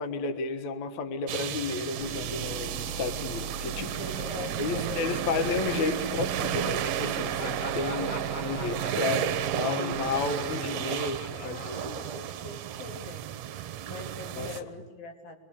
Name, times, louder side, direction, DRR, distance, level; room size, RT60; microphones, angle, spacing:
voice 1, 0.0-4.0 4.6-9.3 9.5-11.8 14.4-14.5, left 4 dB, 60° left, 8 dB, 2.7 m, -32 dB
sound 1, 1.3-14.6, right 10 dB, 70° right, 1.9 m, -33 dB
sound 2, 2.0-11.1, right 7 dB, 50° right, 1.7 m, -37 dB
voice 2, 3.8-5.6 9.6-10.4 11.4-13.3 13.9-15.4, left 3 dB, 90° left, 4 dB, 4.5 m, -43 dB
Laughter, 7.2-12.6, left 2 dB, 40° left, 2.6 m, -44 dB
26.0 x 21.0 x 8.6 m, 1.4 s
omnidirectional pair, 4.1 m